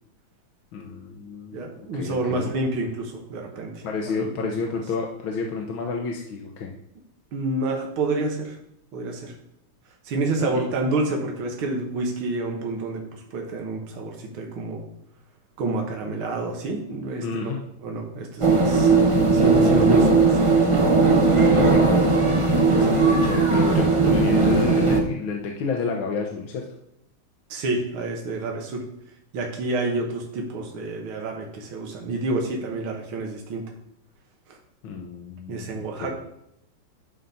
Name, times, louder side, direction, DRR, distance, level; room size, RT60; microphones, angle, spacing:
voice 1, 0.7-2.5 3.8-6.7 10.4-10.6 17.2-17.6 21.5-26.7 34.8-36.1, left 4 dB, 75° left, 1 dB, 1.8 m, -31 dB
voice 2, 1.5-4.8 7.3-8.6 8.9-9.3 10.0-14.8 15.6-18.9 19.3-20.4 22.9-23.0 27.5-28.8 29.3-33.6 34.5-34.6 35.5-36.1, right 2 dB, 80° right, 1 dB, 2.1 m, -28 dB
sound 1, 18.4-25.0, right 3 dB, 25° right, 0.6 m, -18 dB
11.0 x 4.0 x 5.7 m, 0.79 s
omnidirectional pair, 2.2 m